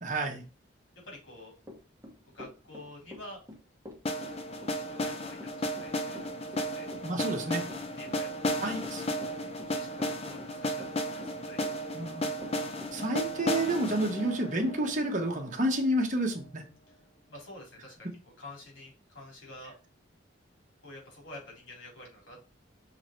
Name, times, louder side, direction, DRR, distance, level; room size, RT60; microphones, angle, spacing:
voice 1, 0.0-0.4 7.0-7.6 8.6-9.0 11.9-12.3 12.9-16.6, right 1 dB, 40° right, 2 dB, 1.3 m, -30 dB
voice 2, 1.0-1.5 2.2-3.4 4.5-7.3 7.9-8.8 9.7-11.7 16.9-17.0 17.3-19.7 20.8-22.4, left 1 dB, 90° left, -2 dB, 3.7 m, -49 dB
Run / Walk footsteps, 1.6-13.4, left 1 dB, 15° right, 1.4 m, -47 dB
sound 1, 4.0-16.0, equal, 30° left, 0.6 m, -34 dB
6.1 x 3.9 x 4.4 m, 0.34 s
head